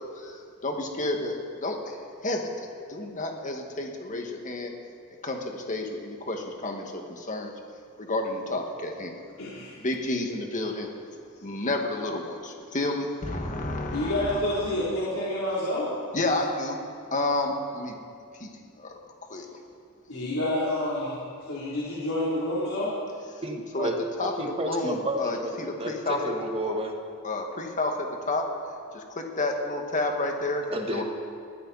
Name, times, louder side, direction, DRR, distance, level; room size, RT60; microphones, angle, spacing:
voice 1, 0.0-4.7 5.2-7.5 8.0-9.2 9.8-10.9 11.4-14.4 16.1-16.8 17.1-18.0 18.3-18.5 18.8-19.0 19.3-19.5 23.3-23.4 23.7-23.9 24.2-26.3 26.6-26.8 27.2-28.5 28.9-31.0, left 2 dB, 35° left, 2 dB, 1.9 m, -30 dB
voice 2, 9.4-9.7 13.9-15.9 20.1-21.2 21.5-23.0, left 1 dB, 75° left, -9 dB, 3.4 m, -28 dB
voice 3, 23.4-24.0 24.4-27.0 30.7-31.0, right 1 dB, 25° right, 3 dB, 1.5 m, -31 dB
22.0 x 15.5 x 4.2 m, 2.3 s
head